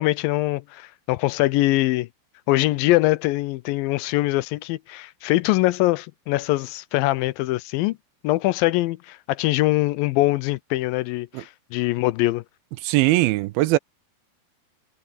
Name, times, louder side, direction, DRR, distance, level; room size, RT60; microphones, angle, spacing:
voice 1, 0.0-2.1 2.5-8.0 8.2-12.4, left 18 dB, 80° left, 2.3 m, -23 dB
voice 2, 12.8-13.8, right 18 dB, 85° right, 2.5 m, -20 dB
omnidirectional pair, 4.3 m